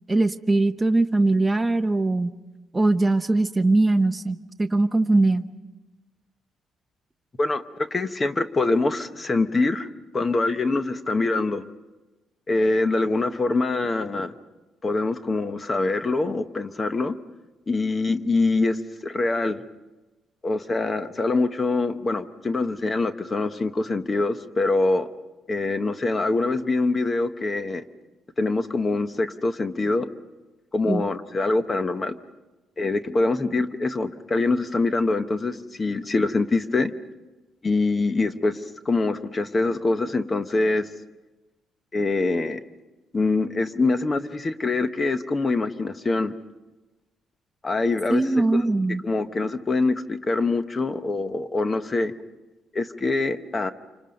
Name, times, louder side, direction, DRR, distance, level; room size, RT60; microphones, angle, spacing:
voice 1, 0.1-2.3 2.7-5.5 30.9-31.1 48.1-49.0, right 2 dB, 10° right, 7 dB, 0.8 m, -21 dB
voice 2, 7.4-9.9 10.1-11.6 12.5-14.3 14.8-17.1 17.7-19.6 20.4-25.1 25.5-27.8 28.4-30.1 30.7-32.2 32.8-36.9 37.6-40.9 41.9-42.6 43.1-46.3 47.6-48.6 49.0-52.1 52.7-53.7, left 3 dB, 20° left, 10 dB, 0.9 m, -24 dB
28.5 x 25.5 x 5.3 m, 1.1 s
cardioid pair, 175°, 0 cm